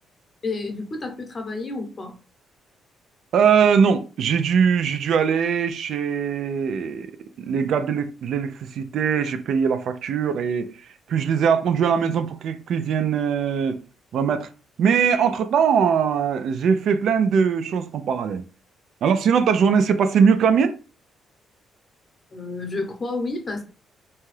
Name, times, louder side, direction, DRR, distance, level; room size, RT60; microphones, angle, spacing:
voice 1, 0.4-2.2 22.3-23.6, left 3 dB, 35° left, 0.8 m, -30 dB
voice 2, 3.3-7.1 7.4-10.7 11.1-13.8 14.1-14.5 14.8-18.4 19.0-20.8, right 6 dB, 70° right, 0.3 m, -21 dB
2.7 x 2.3 x 3.2 m
cardioid pair, 90°, 0 cm